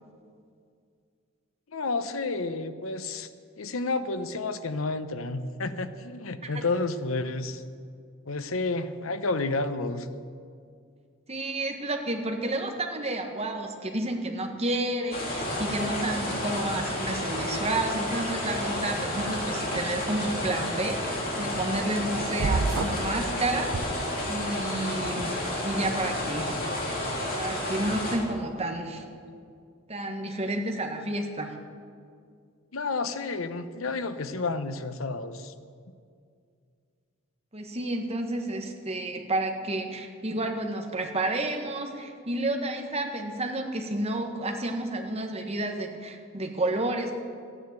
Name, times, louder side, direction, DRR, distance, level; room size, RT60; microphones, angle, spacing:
voice 1, 1.7-3.3 3.6-7.6 8.3-10.1 32.7-35.5, left 3 dB, 85° left, 11 dB, 0.9 m, -30 dB
voice 2, 11.3-23.9 24.3-26.6 27.3-29.0 29.9-31.5 37.5-47.1, right 2 dB, 30° right, 3 dB, 1.5 m, -30 dB
sound 1, 15.1-28.2, left 1 dB, 45° left, 3.6 m, -31 dB
sound 2, 22.4-23.1 23.7-24.6, right 4 dB, 70° right, 0.6 m, -29 dB
14.5 x 9.9 x 8.2 m, 2.3 s
head